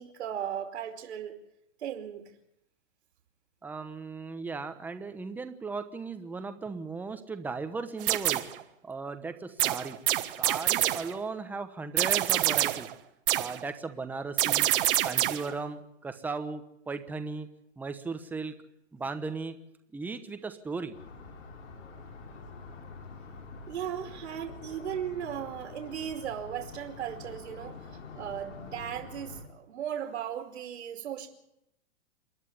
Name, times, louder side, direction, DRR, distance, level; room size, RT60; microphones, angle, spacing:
voice 1, 0.0-1.3 1.8-2.3 23.7-31.3, right 9 dB, 65° right, 2.9 m, -37 dB
voice 2, 3.6-8.4 8.8-10.0 10.4-12.9 13.3-14.7 15.0-17.5 17.8-18.5 18.9-19.6 19.9-20.9, right 4 dB, 5° right, 1.0 m, -36 dB
sound 1, 8.0-8.6 9.6-11.2 12.0-12.9 13.3-13.6 14.4-15.5, right 14 dB, 45° right, 1.4 m, -26 dB
sound 2, 20.9-29.4, left 4 dB, 70° left, 5.7 m, -46 dB
27.5 x 11.0 x 9.6 m
hypercardioid pair, 145°, 38 cm